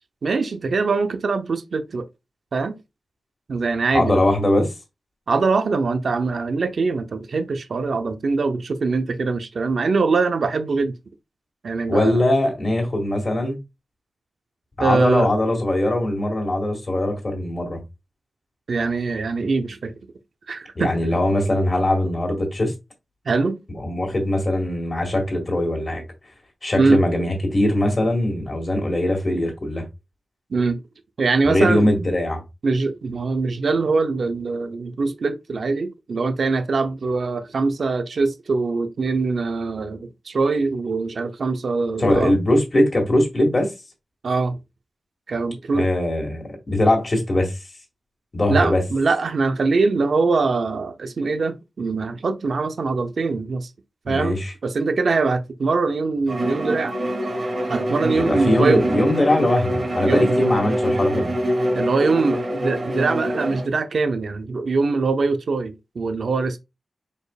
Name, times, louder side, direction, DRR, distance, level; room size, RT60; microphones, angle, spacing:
voice 1, 0.2-2.1 2.5-2.8 3.5-4.2 5.3-10.9 11.6-12.2 14.8-15.3 18.7-19.9 20.5-20.9 23.3-23.6 26.8-27.0 30.5-30.8 31.2-31.9 32.6-42.3 44.2-44.6 45.3-45.9 48.5-53.7 54.1-56.9 57.7-58.8 60.1-60.3 61.7-66.6, right 4 dB, 65° right, 0.6 m, -22 dB
voice 2, 3.9-4.7 11.9-13.6 14.8-17.8 20.8-22.7 23.7-26.0 26.6-29.8 31.4-32.4 42.0-43.7 45.7-47.6 48.3-48.8 54.1-54.5 58.2-61.3, left 1 dB, 30° left, 1.9 m, -21 dB
Bowed string instrument, 56.3-63.7, equal, 40° right, 1.3 m, -24 dB
5.1 x 4.3 x 2.3 m
wide cardioid pair, 130°, 0 cm